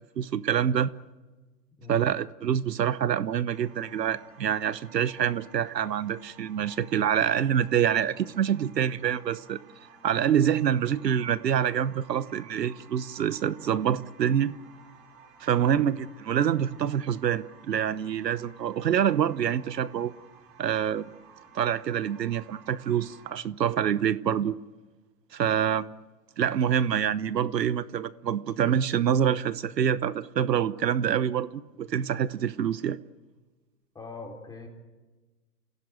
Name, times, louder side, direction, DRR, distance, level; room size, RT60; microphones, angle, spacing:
voice 1, 0.2-0.9 1.9-9.6 10.0-14.5 15.4-20.1 20.6-21.1 21.5-24.6 25.3-25.9 26.4-33.0, right 9 dB, 85° right, 1.0 m, -26 dB
sound 1, 3.5-23.3, right 6 dB, 40° right, 5.2 m, -54 dB
voice 2, 15.6-15.9 33.9-34.7, left 3 dB, 10° left, 4.1 m, -43 dB
30.0 x 17.0 x 9.1 m
hypercardioid pair, 135°, 48 cm